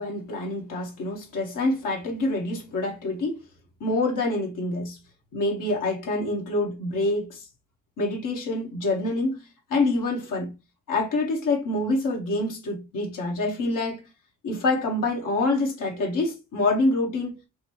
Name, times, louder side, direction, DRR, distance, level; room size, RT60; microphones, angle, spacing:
voice 1, 0.0-3.4 3.8-5.0 5.3-7.4 8.0-9.4 9.7-10.5 10.9-14.1 14.4-17.4, left 2 dB, 70° left, 1.3 m, -26 dB
5.2 x 2.2 x 3.0 m
hypercardioid pair, 40°, 32 cm